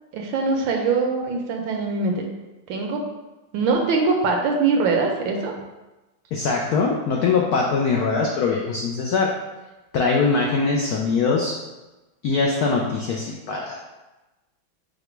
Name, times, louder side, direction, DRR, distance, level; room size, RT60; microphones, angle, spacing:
voice 1, 0.1-2.2 2.7-3.0 3.5-5.5, right 4 dB, 75° right, 2 dB, 1.3 m, -22 dB
voice 2, 6.3-9.3 9.9-11.5 12.2-13.8, left 4 dB, 85° left, -2 dB, 0.8 m, -22 dB
4.9 x 2.2 x 4.4 m, 1.1 s
omnidirectional pair, 2.2 m